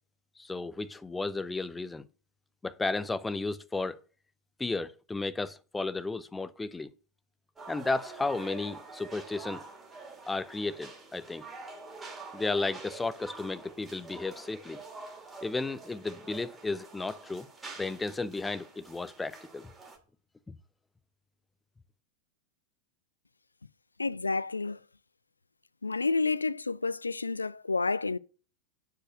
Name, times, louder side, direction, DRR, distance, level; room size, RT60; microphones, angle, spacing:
voice 1, 0.4-2.1 2.6-4.0 4.6-6.9 7.7-9.6 10.3-11.4 12.3-14.8 15.4-17.5 17.8-19.7 20.5-20.6, left 3 dB, 10° left, 0.6 m, -33 dB
sound 1, 7.6-20.0, right 3 dB, 10° right, 2.6 m, -47 dB
voice 2, 24.0-24.8 25.8-28.2, left 3 dB, 80° left, 0.4 m, -30 dB
9.0 x 4.9 x 6.4 m
figure-of-eight pair, 90°, 0 cm